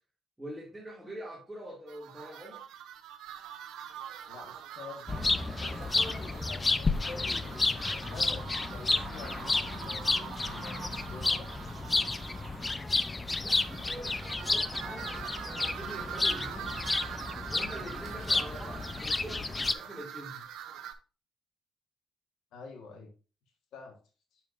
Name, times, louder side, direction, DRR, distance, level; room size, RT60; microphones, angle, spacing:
voice 1, 0.4-2.6 13.4-15.1 15.4-16.7 17.5-20.4, right 1 dB, 5° right, -4 dB, 2.3 m, -44 dB
sound 1, 1.9-20.9, right 9 dB, 85° right, 0.8 m, -44 dB
voice 2, 4.3-5.2 5.5-11.5 22.5-23.1 23.7-24.0 24.3-24.4, left 4 dB, 85° left, 3 dB, 1.3 m, -47 dB
sound 2, 5.1-19.7, left 3 dB, 25° left, 0.5 m, -31 dB
7.1 x 6.5 x 2.5 m, 0.35 s
cardioid pair, 90°, 0 cm